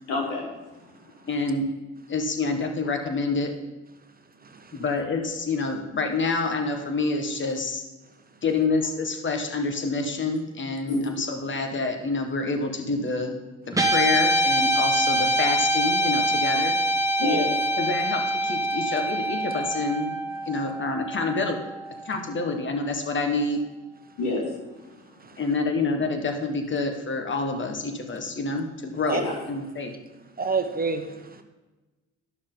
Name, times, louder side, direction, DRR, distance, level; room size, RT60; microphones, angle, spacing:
voice 1, 0.1-1.3 10.9-11.1 17.2-17.7 24.2-24.6 24.9-25.1 29.1-29.4, left 3 dB, 85° left, -2 dB, 2.7 m, -29 dB
voice 2, 1.3-1.7 2.1-3.5 4.7-7.8 8.4-13.4 13.8-16.7 17.8-20.2 20.5-21.6 22.0-23.6 25.4-30.0, left 3 dB, 40° left, 4 dB, 1.5 m, -27 dB
voice 3, 4.4-4.8 17.2-17.4 25.2-25.4 29.0-29.2 30.4-31.4, right 4 dB, 30° right, 7 dB, 1.0 m, -29 dB
Guitar, 13.7-22.2, right 1 dB, 10° right, 1.4 m, -25 dB
12.5 x 6.2 x 3.9 m, 1.1 s
supercardioid pair, 70°, 30 cm